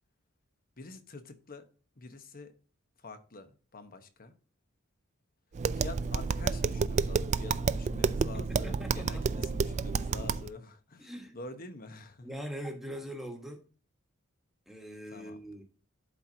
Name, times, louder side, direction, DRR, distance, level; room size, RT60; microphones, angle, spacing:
voice 1, 0.8-1.6 2.0-2.5 3.0-4.4 5.7-12.3 15.1-15.4, left 3 dB, 45° left, 1.0 m, -47 dB
Tap, 5.5-10.5, right 5 dB, 35° right, 0.3 m, -30 dB
voice 2, 8.0-9.6 11.0-11.3 12.2-13.6 14.7-15.6, equal, ahead, 1.4 m, -42 dB
11.5 x 4.5 x 2.8 m
head